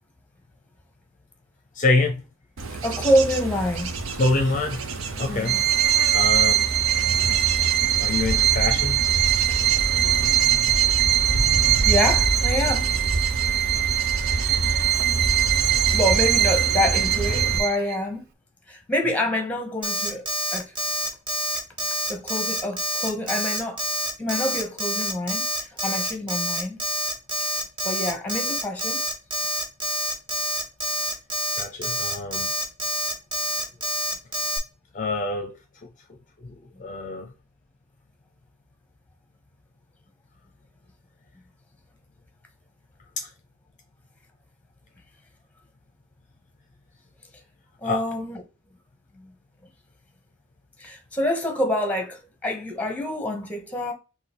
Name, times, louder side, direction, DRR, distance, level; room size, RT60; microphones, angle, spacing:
voice 1, 1.8-2.2 4.2-4.9 5.2-5.6 6.1-6.7 8.0-9.0 31.6-32.5 34.9-35.5 36.4-37.3 43.2-43.3 47.8-48.1, left 3 dB, 40° left, 0.6 m, -26 dB
Bird / Insect / Wind, 2.6-17.6, right 2 dB, 75° right, 0.8 m, -28 dB
voice 2, 2.8-3.9 5.3-5.6 11.8-12.9 15.6-18.2 18.7-20.7 22.1-23.8 24.2-26.8 27.4-27.6 27.8-29.0 47.8-48.4 49.1-49.3 50.8-53.9, left 1 dB, 5° left, 1.0 m, -27 dB
Bowed string instrument, 5.5-18.0, right 13 dB, 50° right, 0.4 m, -22 dB
Alarm, 19.8-34.6, equal, 25° right, 1.4 m, -27 dB
3.9 x 2.9 x 4.3 m
head